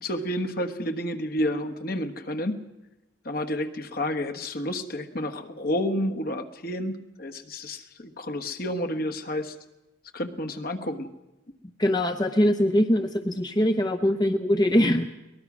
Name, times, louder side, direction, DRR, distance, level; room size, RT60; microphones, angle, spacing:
voice 1, 0.0-2.6 3.2-6.9 7.2-9.5 10.1-11.1, left 1 dB, 50° left, 8 dB, 1.4 m, -30 dB
voice 2, 11.8-15.1, left 1 dB, 20° left, 6 dB, 0.8 m, -22 dB
23.0 x 19.5 x 6.2 m, 1.0 s
head